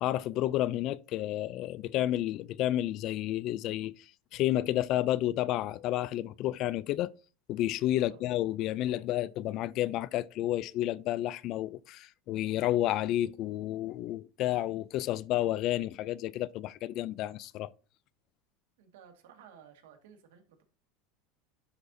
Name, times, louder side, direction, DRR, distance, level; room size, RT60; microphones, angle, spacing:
voice 1, 0.0-4.0 4.3-7.1 7.5-17.7, left 14 dB, 50° left, 0.3 m, -31 dB
voice 2, 7.9-8.2 18.8-20.6, right 8 dB, 90° right, 1.7 m, -55 dB
11.0 x 4.2 x 2.6 m
supercardioid pair, 135°, 0 cm